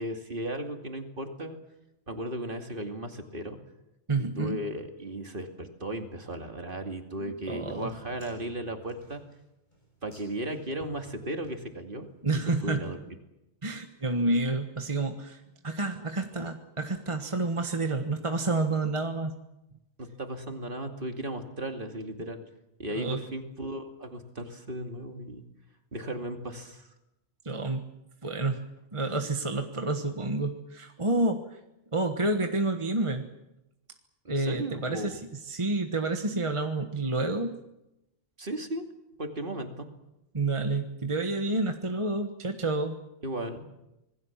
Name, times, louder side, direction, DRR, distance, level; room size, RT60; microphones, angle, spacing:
voice 1, 0.0-1.6 2.1-3.6 4.2-9.2 10.0-12.1 12.3-13.0 20.0-22.4 22.8-25.4 25.9-26.9 34.2-35.2 38.4-38.9 39.2-39.9 43.2-43.7, right 1 dB, 45° right, 5 dB, 2.7 m, -36 dB
voice 2, 4.1-4.6 7.2-7.9 12.2-12.9 13.6-19.4 22.9-23.2 27.4-27.9 28.2-28.6 28.9-31.6 31.9-33.3 34.3-37.5 40.3-43.0, right 2 dB, 25° right, 5 dB, 1.4 m, -29 dB
sound 1, 7.7-12.3, equal, 40° left, 6.9 m, -55 dB
26.5 x 20.5 x 7.3 m, 0.91 s
omnidirectional pair, 1.3 m